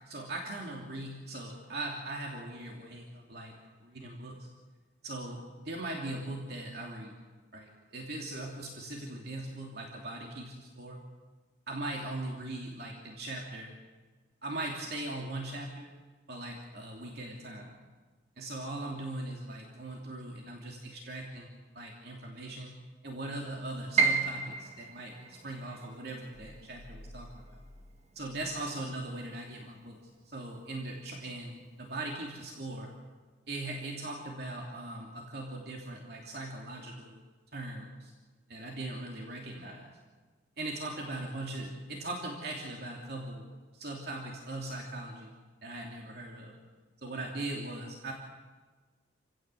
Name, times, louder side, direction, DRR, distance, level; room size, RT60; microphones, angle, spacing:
voice 1, 0.0-3.5 3.8-4.5 5.0-7.2 7.5-11.0 11.7-13.7 14.4-15.9 16.3-17.7 18.4-22.7 23.0-27.6 28.1-30.0 30.2-32.9 33.5-37.2 37.5-38.1 38.5-39.9 40.6-43.5 43.7-45.3 45.6-46.5 47.0-48.1, right 2 dB, 55° right, -1 dB, 3.0 m, -40 dB
Piano, 24.0-29.9 30.2-31.4 31.8-31.9 32.6-32.9, right 5 dB, 35° right, 1.9 m, -34 dB
sound 1, 26.3-28.9 29.2-29.4, equal, 35° left, 1.2 m, -52 dB
28.5 x 16.5 x 7.8 m, 1.4 s
head